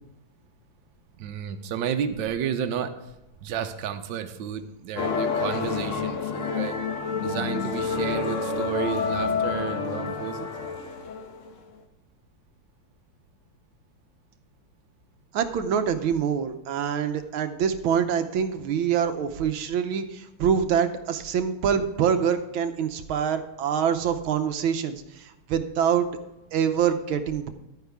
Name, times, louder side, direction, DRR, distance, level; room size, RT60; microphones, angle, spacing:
voice 1, 1.2-2.9 3.4-6.8 7.2-10.5, right 8 dB, 70° right, 7 dB, 1.4 m, -31 dB
sound 1, 5.0-11.5, left 5 dB, 50° left, 1.1 m, -28 dB
voice 2, 15.3-26.1 26.5-27.5, right 7 dB, 85° right, 8 dB, 1.6 m, -25 dB
11.5 x 9.4 x 3.5 m, 0.95 s
omnidirectional pair, 2.2 m